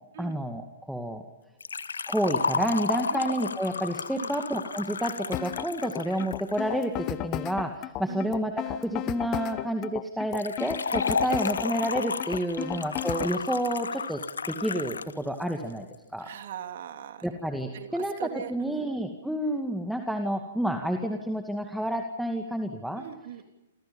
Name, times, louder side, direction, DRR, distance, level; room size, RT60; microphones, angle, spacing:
voice 1, 0.2-1.2 2.1-15.9 16.1-16.3 17.2-23.1, right 1 dB, ahead, 4 dB, 2.3 m, -30 dB
Liquid, 1.6-6.6 10.3-15.1 15.4-15.5 16.4-16.5, left 5 dB, 80° left, 1.4 m, -32 dB
sound 1, 5.3-13.4, left 17 dB, 30° left, 1.0 m, -34 dB
voice 2, 16.2-17.3 17.7-18.9 23.0-23.5, right 10 dB, 60° right, 7 dB, 3.0 m, -40 dB
29.5 x 26.5 x 5.6 m, 1.0 s
hypercardioid pair, 120°, 0 cm